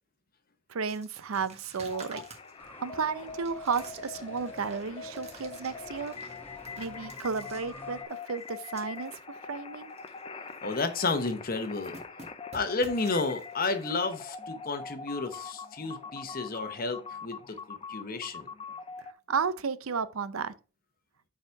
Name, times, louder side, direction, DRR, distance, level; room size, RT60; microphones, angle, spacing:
voice 1, 0.7-2.2 2.8-6.1 6.8-9.9 19.3-20.5, right 5 dB, 80° right, 0.6 m, -33 dB
sound 1, 0.9-9.2 9.5-9.6 9.9-10.2 10.5-11.3 11.5-13.9, right 3 dB, 30° right, 1.5 m, -51 dB
sound 2, 1.9-19.1, left 5 dB, 25° left, 0.5 m, -43 dB
sound 3, 2.6-8.0, left 1 dB, 10° left, 1.7 m, -50 dB
voice 2, 10.6-12.0 12.5-18.5, left 3 dB, 45° left, 0.9 m, -32 dB
7.0 x 4.9 x 4.6 m
head